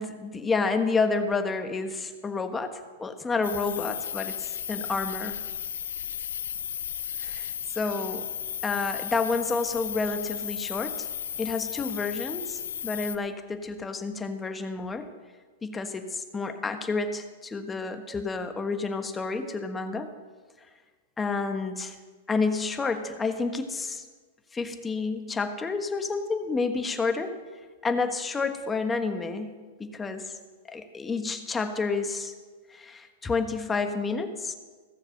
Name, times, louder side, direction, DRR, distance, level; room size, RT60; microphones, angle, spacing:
voice 1, 0.0-5.4 7.2-8.3 8.6-11.1 11.4-15.1 15.6-20.1 21.2-21.9 22.3-24.0 24.5-27.4 27.8-29.5 29.8-30.4 30.7-32.3 32.7-34.6, left 4 dB, 15° left, 8 dB, 1.2 m, -30 dB
sound 1, 3.4-13.2, left 9 dB, 80° left, 0.7 m, -34 dB
16.5 x 7.2 x 6.8 m, 1.4 s
hypercardioid pair, 120°, 0 cm